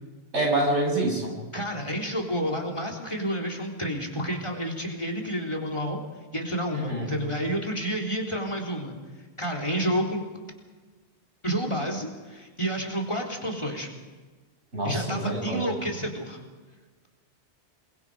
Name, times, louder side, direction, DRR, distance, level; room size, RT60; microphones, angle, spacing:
voice 1, 0.3-1.3 6.7-7.1 14.7-15.7, right 1 dB, 90° right, -1 dB, 7.8 m, -26 dB
voice 2, 1.5-6.0 6.3-9.0 9.4-10.2 11.4-13.9 14.8-16.4, equal, 25° left, 2 dB, 3.8 m, -30 dB
27.5 x 23.0 x 5.1 m, 1.3 s
omnidirectional pair, 1.1 m